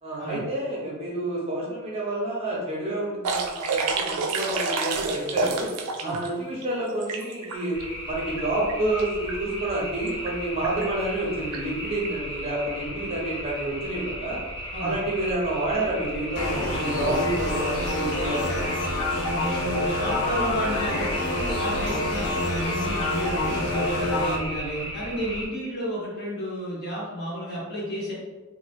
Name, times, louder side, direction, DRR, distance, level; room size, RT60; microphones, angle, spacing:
voice 1, 0.0-5.7 6.0-7.8 8.1-14.4 14.8-18.8, right 1 dB, 25° right, -4 dB, 0.6 m, -29 dB
sound 1, 3.2-6.3 6.6-7.8 8.4-8.5 8.7-9.0 9.3-9.4 10.1-10.3 10.6-10.9 11.5-11.6 12.0-12.1, right 4 dB, 70° right, 0.3 m, -29 dB
sound 2, 7.7-25.5, equal, 25° left, 0.6 m, -36 dB
sound 3, 16.3-24.3, left 1 dB, 85° left, 0.9 m, -27 dB
voice 2, 19.3-28.1, equal, 50° left, -7 dB, 1.3 m, -31 dB
2.9 x 2.1 x 3.3 m, 1.2 s
head